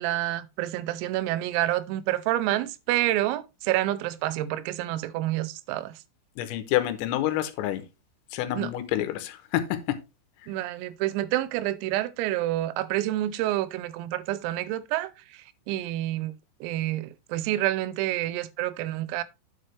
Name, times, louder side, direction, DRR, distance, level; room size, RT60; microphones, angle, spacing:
voice 1, 0.0-5.9 8.6-8.7 10.5-15.1 15.7-16.3 16.6-19.2, right 15 dB, 85° right, 3.4 m, -28 dB
voice 2, 6.4-7.8 8.3-10.0, left 13 dB, 85° left, 3.7 m, -28 dB
9.9 x 7.4 x 3.3 m
omnidirectional pair, 6.0 m